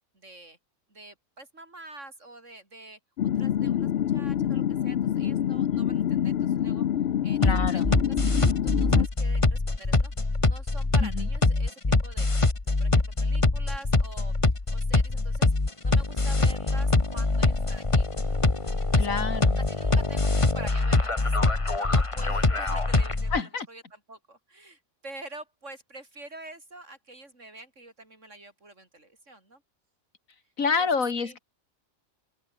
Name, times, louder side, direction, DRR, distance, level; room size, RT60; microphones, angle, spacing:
voice 1, 0.1-0.6 0.9-3.0 3.3-6.9 7.2-10.1 10.4-12.3 12.6-14.3 14.7-15.5 15.8-18.1 18.9-19.3 19.6-21.3 21.8-29.6 30.8-31.4, right 2 dB, 60° right, 5.6 m, -46 dB
sound 1, 3.2-9.1, left 10 dB, 55° left, 0.8 m, -26 dB
voice 2, 7.4-7.9 11.0-11.3 19.0-19.6 23.3-23.7 30.6-31.4, left 5 dB, 75° left, 2.5 m, -28 dB
sound 2, 7.4-23.4, left 3 dB, 25° left, 1.6 m, -24 dB
open air
omnidirectional pair, 1.4 m